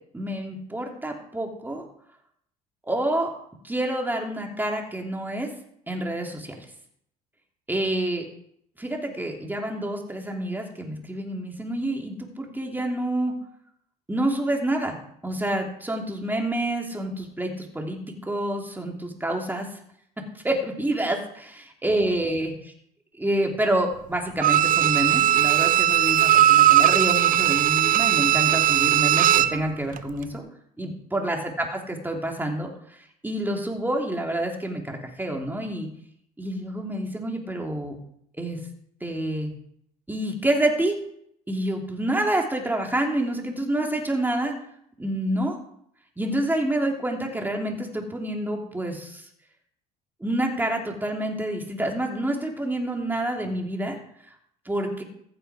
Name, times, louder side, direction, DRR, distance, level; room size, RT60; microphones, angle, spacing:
voice 1, 0.1-1.9 2.9-3.3 3.6-5.5 5.9-6.6 7.7-8.2 8.8-13.3 14.1-15.0 15.2-19.7 20.4-22.5 23.2-30.4 30.8-33.0 33.2-35.9 36.4-38.0 38.4-38.6 39.0-39.5 40.1-41.0 41.5-44.6 45.0-45.6 46.2-49.2 50.2-54.0 54.6-55.0, right 1 dB, 10° right, 1 dB, 2.9 m, -28 dB
Bowed string instrument, 24.4-29.6 30.0-30.1, right 12 dB, 50° right, 0.6 m, -19 dB
15.0 x 6.9 x 4.9 m, 0.69 s
supercardioid pair, 75°, 18 cm